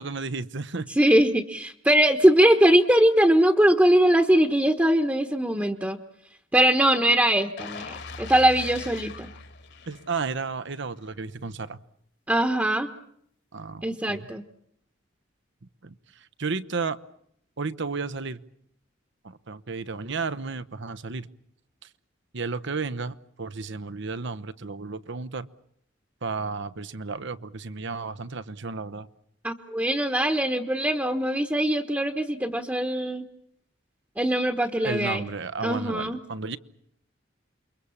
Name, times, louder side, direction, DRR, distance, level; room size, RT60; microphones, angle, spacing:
voice 1, 0.0-0.9 9.9-11.8 13.5-14.3 15.8-15.9 16.4-17.0 17.6-18.4 19.2-21.3 22.3-25.5 26.2-29.1 34.8-36.6, right 4 dB, 65° right, 12 dB, 1.0 m, -33 dB
voice 2, 1.0-6.0 6.5-9.3 12.3-12.9 13.8-14.4 29.4-33.2 34.2-35.3 35.6-36.2, right 1 dB, 10° right, 6 dB, 1.2 m, -21 dB
sound 1, 7.6-10.5 10.9-11.1, left 4 dB, 65° left, 2.5 m, -40 dB
28.5 x 23.5 x 7.2 m, 0.71 s
head